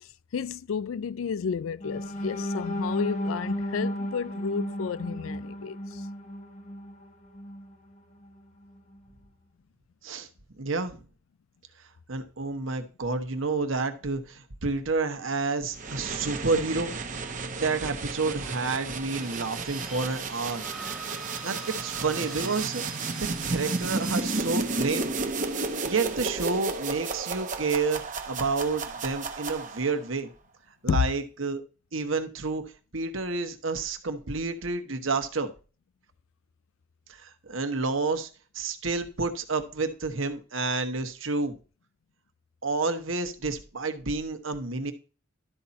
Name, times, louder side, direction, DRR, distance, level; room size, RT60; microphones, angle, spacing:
voice 1, 0.0-6.1 30.9-31.0, left 6 dB, 85° left, 0.4 m, -32 dB
sound 1, 1.8-7.7 8.2-8.4 8.8-9.0, equal, 35° left, 1.1 m, -34 dB
voice 2, 10.6-11.0 12.1-16.9 17.3-20.7 21.4-23.1 23.4-25.1 25.9-30.3 30.8-31.6 31.9-32.6 32.9-35.5 37.1-38.3 38.5-41.5 42.6-44.9, right 3 dB, 75° right, 1.2 m, -29 dB
sound 2, 15.7-30.0, right 3 dB, 40° right, 1.0 m, -33 dB
sound 3, 19.1-24.4, right 2 dB, ahead, 0.9 m, -44 dB
12.5 x 4.3 x 4.2 m
head